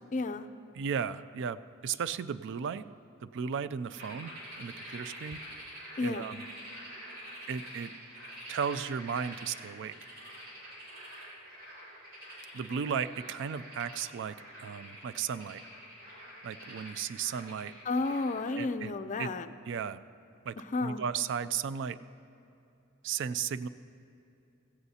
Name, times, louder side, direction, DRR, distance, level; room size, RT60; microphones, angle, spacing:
voice 1, 0.1-0.5 6.0-6.3 17.9-19.5 20.7-21.0, left 3 dB, 35° left, 10 dB, 0.4 m, -32 dB
voice 2, 0.7-2.9 3.2-4.3 4.6-5.4 6.0-6.4 7.5-7.9 8.5-9.9 12.5-15.6 16.4-17.7 18.6-18.9 19.2-19.3 19.7-20.0 20.4-20.6 20.8-22.0 23.0-23.7, right 7 dB, 60° right, 15 dB, 0.4 m, -35 dB
sound 1, 3.9-18.5, equal, 85° right, 3.4 m, -47 dB
16.0 x 15.0 x 2.8 m, 2.8 s
head